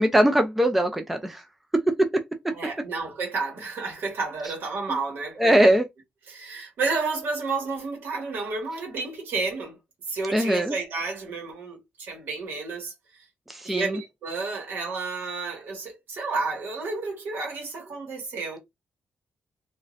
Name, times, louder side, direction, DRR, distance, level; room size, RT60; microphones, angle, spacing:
voice 1, 0.0-1.4 1.7-2.2 5.4-5.9 10.3-10.8 13.5-14.0, right 1 dB, 5° right, 0.3 m, -21 dB
voice 2, 2.5-5.7 6.3-9.8 10.1-12.9 13.6-18.6, right 4 dB, 70° right, 1.3 m, -31 dB
3.0 x 2.5 x 2.4 m
wide cardioid pair, 170°, 4 cm